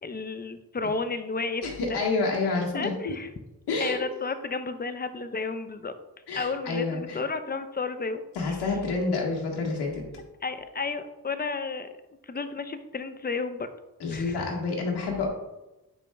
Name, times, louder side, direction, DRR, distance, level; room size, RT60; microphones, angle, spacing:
voice 1, 0.0-2.0 2.7-3.3 3.8-5.9 6.3-8.2 8.5-8.6 10.4-11.9 12.3-13.7 14.1-14.4, left 4 dB, 25° left, 10 dB, 0.7 m, -32 dB
voice 2, 1.6-3.1 3.7-4.0 6.3-7.2 8.3-10.0 14.0-15.3, left 3 dB, 85° left, -1 dB, 1.7 m, -28 dB
10.5 x 4.7 x 2.4 m, 0.99 s
cardioid pair, 60°, 39 cm